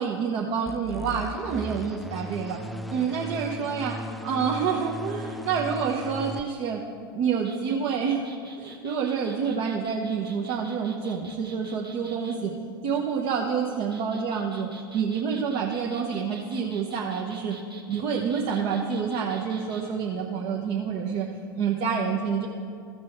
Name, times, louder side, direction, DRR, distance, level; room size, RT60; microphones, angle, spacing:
voice 1, 0.0-2.6 2.9-3.9 4.2-6.8 7.1-8.2 8.6-12.5 12.8-14.7 14.9-17.6 17.9-21.3 21.5-22.5, right 6 dB, 45° right, -1 dB, 1.0 m, -28 dB
sound 1, 0.7-6.4, right 1 dB, ahead, 0.3 m, -37 dB
sound 2, 7.3-12.4 13.7-19.8, right 3 dB, 85° right, 1.1 m, -48 dB
15.5 x 6.1 x 4.5 m, 2.4 s
figure-of-eight pair, 90°, 12 cm